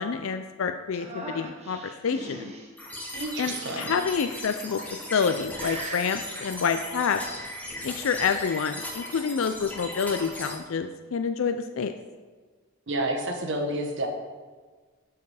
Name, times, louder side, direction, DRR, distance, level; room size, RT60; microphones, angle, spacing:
voice 1, 0.0-2.5 3.4-4.8 5.1-7.2 7.8-11.9, left 6 dB, 70° left, 7 dB, 0.4 m, -28 dB
sound 1, 0.9-2.7 3.5-4.3 5.0-5.3 5.6-6.2 7.5-8.3, right 1 dB, 30° right, 1.1 m, -40 dB
sound 2, 2.8-10.5, left 1 dB, 10° left, 1.3 m, -38 dB
voice 2, 3.1-3.9 12.9-14.1, right 1 dB, 60° right, 4 dB, 1.1 m, -29 dB
12.5 x 4.7 x 4.9 m, 1.4 s
head